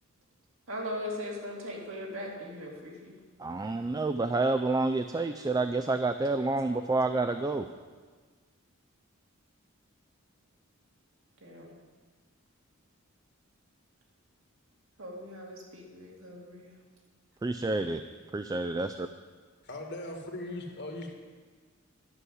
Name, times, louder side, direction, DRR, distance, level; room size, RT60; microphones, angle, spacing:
voice 1, 0.7-3.2 11.4-11.7 15.0-16.7, left 1 dB, 70° right, -1 dB, 2.5 m, -39 dB
voice 2, 3.4-7.7 17.4-18.0 18.3-19.1, right 3 dB, 20° right, 8 dB, 0.3 m, -29 dB
voice 3, 19.6-21.1, left 1 dB, 55° left, 3 dB, 1.7 m, -39 dB
11.5 x 6.4 x 9.3 m, 1.5 s
head